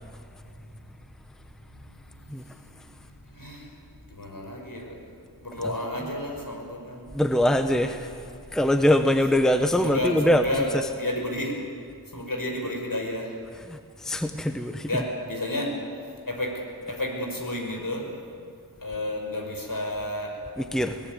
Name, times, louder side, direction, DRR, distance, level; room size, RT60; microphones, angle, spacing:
voice 1, 3.3-3.7 4.1-4.9 5.4-7.1 9.8-11.6 12.1-13.3 14.9-15.7 16.3-16.5 16.9-18.0 18.8-20.3, left 1 dB, 55° left, 1 dB, 5.7 m, -31 dB
voice 2, 7.1-8.1 8.5-10.4 13.7-14.9 20.6-20.9, left 1 dB, ahead, 7 dB, 1.1 m, -23 dB
22.0 x 17.5 x 9.4 m, 2.4 s
wide cardioid pair, 50°, 39 cm